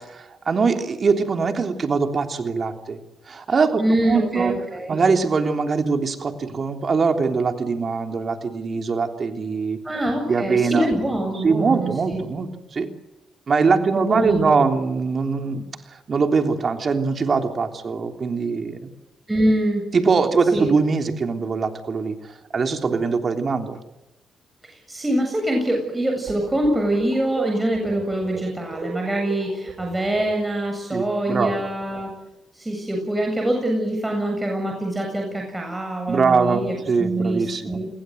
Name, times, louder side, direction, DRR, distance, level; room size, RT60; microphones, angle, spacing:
voice 1, 0.0-3.0 3.3-4.5 4.9-9.8 10.3-10.9 11.4-12.9 13.5-15.7 16.1-18.9 19.9-22.2 22.5-23.8 30.9-31.5 36.1-37.8, right 4 dB, 50° right, 5 dB, 3.3 m, -22 dB
voice 2, 3.8-5.0 9.8-12.2 13.9-14.6 19.3-19.8 20.5-20.7 24.6-32.1 32.5-37.9, right 1 dB, 15° right, 2 dB, 7.7 m, -24 dB
sound 1, 26.3-30.7, right 6 dB, 70° right, 6.1 m, -37 dB
29.0 x 21.5 x 8.0 m, 0.96 s
supercardioid pair, 55°, 0 cm